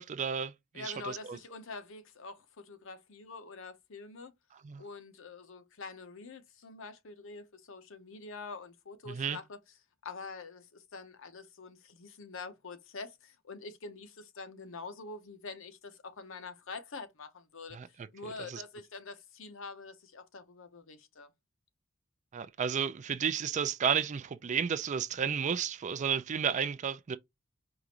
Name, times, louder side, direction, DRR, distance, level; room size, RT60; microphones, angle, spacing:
voice 1, 0.0-1.4 4.6-4.8 9.1-9.4 17.7-17.9 18.2-18.6 22.3-27.2, right 7 dB, 35° right, 0.3 m, -32 dB
voice 2, 0.7-4.3 4.8-9.6 10.0-17.8 18.1-21.3, left 4 dB, 65° left, 0.8 m, -46 dB
4.8 x 2.5 x 2.9 m
head